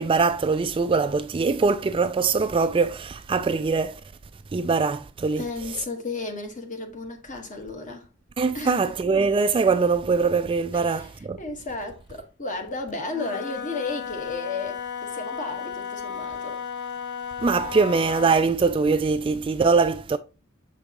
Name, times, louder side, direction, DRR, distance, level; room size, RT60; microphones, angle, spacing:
voice 1, 0.0-4.0 4.5-5.4 8.4-11.4 17.4-20.2, right 4 dB, 25° right, 0.3 m, -22 dB
voice 2, 5.4-8.1 8.5-8.9 10.7-16.6, left 3 dB, 35° left, 1.5 m, -33 dB
Wind instrument woodwind instrument, 13.0-18.5, left 6 dB, 55° left, 0.7 m, -34 dB
7.3 x 5.1 x 3.0 m
head